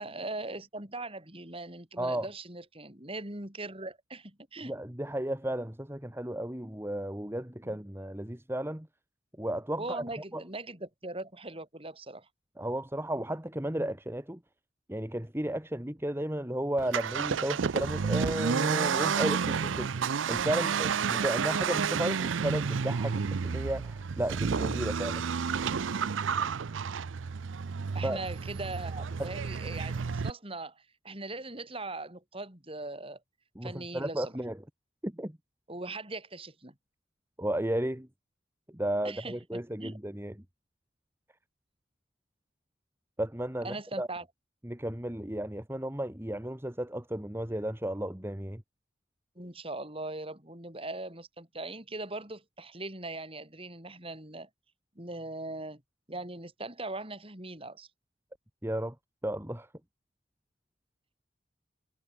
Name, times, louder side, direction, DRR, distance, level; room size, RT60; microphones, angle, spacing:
voice 1, 0.0-4.7 7.6-7.8 9.8-12.3 27.9-33.2 33.6-34.3 35.7-36.7 39.0-40.0 43.6-44.3 49.4-54.5 55.0-55.8 56.1-57.9, right 2 dB, 30° right, 5.9 m, -40 dB
voice 2, 4.6-8.9 9.4-10.0 10.3-10.4 12.6-14.4 14.9-25.2 28.0-28.2 29.2-29.3 33.5-34.6 35.0-35.4 37.4-38.1 38.7-40.3 43.2-44.1 44.6-48.6 58.6-58.9 59.2-59.7, right 1 dB, 10° right, 1.6 m, -33 dB
Accelerating revving vroom, 16.8-30.3, right 6 dB, 85° right, 0.5 m, -31 dB
head